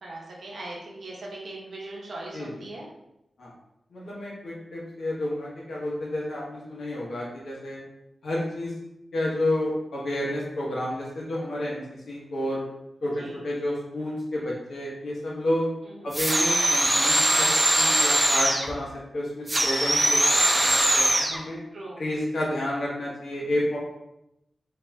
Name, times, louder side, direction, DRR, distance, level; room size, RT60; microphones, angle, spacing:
voice 1, 0.0-2.9 13.0-13.4 15.8-16.1 21.7-22.0, right 2 dB, 80° right, -3 dB, 0.9 m, -40 dB
voice 2, 3.9-7.8 8.2-8.7 9.1-12.6 13.0-15.7 16.0-17.5 17.7-18.9 19.1-20.2 20.5-21.6 22.0-23.8, left 1 dB, 85° left, -5 dB, 1.2 m, -30 dB
sound 1, 16.1-18.7 19.5-21.4, right 1 dB, 20° right, 0.4 m, -21 dB
4.0 x 2.7 x 2.3 m, 0.85 s
wide cardioid pair, 120°, 0 cm